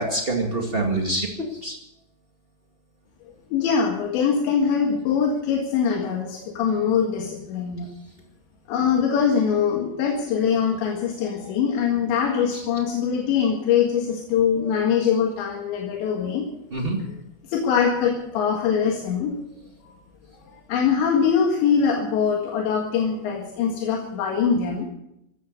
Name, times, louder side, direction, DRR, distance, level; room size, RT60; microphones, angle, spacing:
voice 1, 0.0-1.8 12.5-12.6 16.7-17.0, right 2 dB, 85° right, 1 dB, 0.5 m, -26 dB
voice 2, 3.5-7.9 8.7-16.5 17.5-19.4 19.9-20.0 20.7-24.8, left 7 dB, 80° left, 1 dB, 4.1 m, -23 dB
16.0 x 13.5 x 6.6 m, 0.82 s
omnidirectional pair, 5.1 m